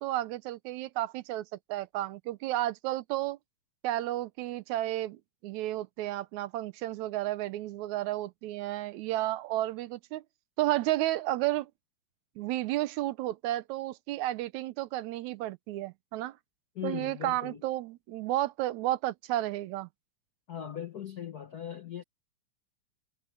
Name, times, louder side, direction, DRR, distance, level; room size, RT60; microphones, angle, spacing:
voice 1, 0.0-3.4 3.8-10.2 10.6-11.7 12.4-16.4 16.8-19.9, right 15 dB, 80° right, 2.1 m, -32 dB
voice 2, 16.7-17.6 20.5-22.0, left 9 dB, 75° left, 0.8 m, -39 dB
omnidirectional pair, 3.4 m